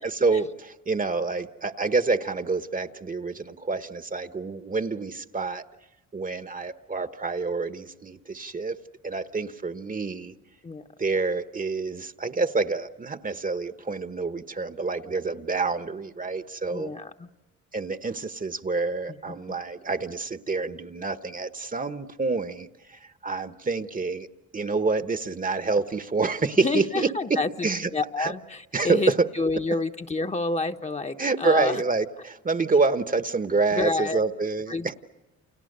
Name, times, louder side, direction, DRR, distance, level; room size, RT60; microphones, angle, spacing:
voice 1, 0.0-5.6 6.1-8.7 9.0-10.3 11.0-16.9 17.7-24.3 24.5-27.9 28.2-28.3 28.7-29.2 31.2-34.9, right 4 dB, 25° right, 11 dB, 1.1 m, -27 dB
voice 2, 16.7-17.3 19.1-19.6 26.6-31.8 33.8-34.2 34.7-34.9, left 3 dB, 20° left, 6 dB, 1.1 m, -29 dB
29.5 x 29.0 x 6.7 m, 1.0 s
cardioid pair, 90°, 30 cm